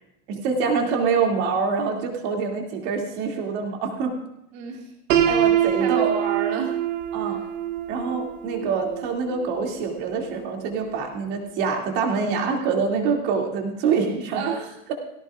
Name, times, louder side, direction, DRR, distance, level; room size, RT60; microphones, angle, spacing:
voice 1, 0.3-4.1 5.3-6.1 7.1-7.4 7.9-14.4, right 5 dB, 40° right, 1 dB, 2.5 m, -25 dB
voice 2, 4.5-4.9 5.2-5.4 5.8-6.8 7.3-7.4 14.3-14.7, right 7 dB, 55° right, -1 dB, 2.8 m, -29 dB
Piano, 5.1-11.0, right 10 dB, 75° right, 1.6 m, -25 dB
18.0 x 17.5 x 2.4 m, 0.83 s
supercardioid pair, 175°, 39 cm